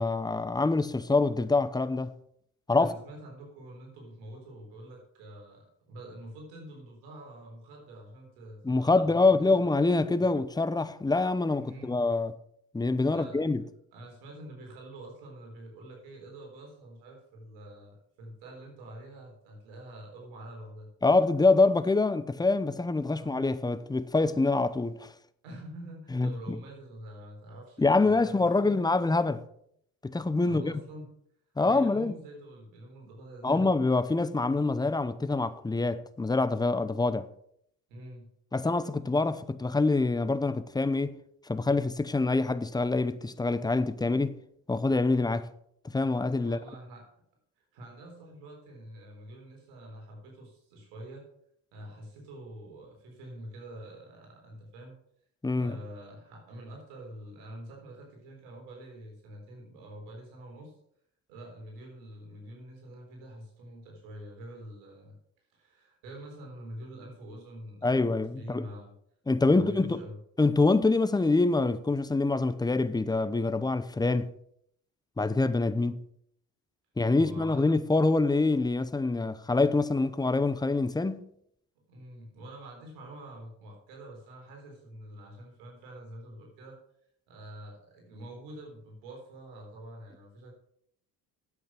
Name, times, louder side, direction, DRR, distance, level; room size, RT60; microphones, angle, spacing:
voice 1, 0.0-2.1 2.7-2.9 8.6-12.3 12.7-13.6 21.0-25.1 26.1-26.3 27.8-29.4 30.0-30.7 31.6-32.1 33.4-37.3 38.5-41.2 41.5-44.4 44.7-45.5 45.9-46.6 55.4-55.8 67.8-68.7 69.3-70.0 70.4-74.3 75.2-76.0 77.0-81.3, left 3 dB, 10° left, 0.7 m, -25 dB
voice 2, 2.8-9.6 10.2-10.3 11.6-12.0 13.1-13.4 13.9-20.9 23.1-23.5 25.4-28.8 30.4-31.1 31.6-33.6 37.9-38.3 46.4-47.1 47.6-51.3 51.7-55.0 55.5-60.7 61.3-65.2 65.5-68.9 69.4-70.2 77.1-77.7 81.8-86.8 87.3-90.5, right 1 dB, 90° right, 3.9 m, -46 dB
9.7 x 8.0 x 5.9 m
supercardioid pair, 85°, 38 cm